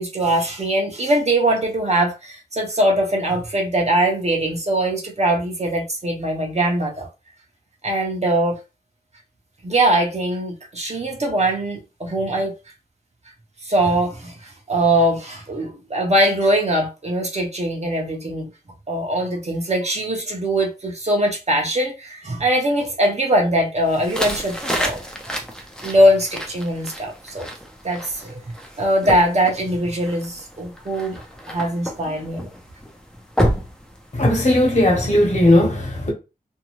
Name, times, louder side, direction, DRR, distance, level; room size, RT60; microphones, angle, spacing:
voice 1, 0.0-7.1 7.8-8.6 9.6-12.5 13.6-18.5 18.9-25.0 25.8-27.5 27.8-28.4 28.8-31.2 31.5-32.5, right 1 dB, 40° right, 0.8 m, -21 dB
sound 1, 23.9-34.6, equal, 5° left, 0.6 m, -30 dB
voice 2, 34.1-36.1, left 1 dB, 45° left, 1.2 m, -17 dB
2.6 x 2.2 x 3.0 m
wide cardioid pair, 85°, 17 cm